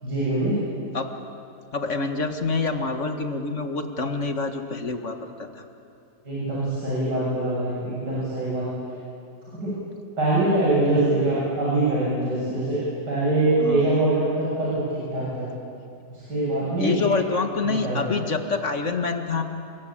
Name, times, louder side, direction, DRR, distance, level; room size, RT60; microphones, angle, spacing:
voice 1, 0.0-0.6 6.3-8.7 9.5-9.7 10.2-15.5 16.1-17.2 17.8-18.0, right 2 dB, 90° right, -8 dB, 7.8 m, -24 dB
voice 2, 1.7-5.7 13.6-13.9 16.8-19.4, left 3 dB, 45° left, 6 dB, 2.0 m, -26 dB
28.0 x 22.5 x 8.8 m, 2.5 s
omnidirectional pair, 1.8 m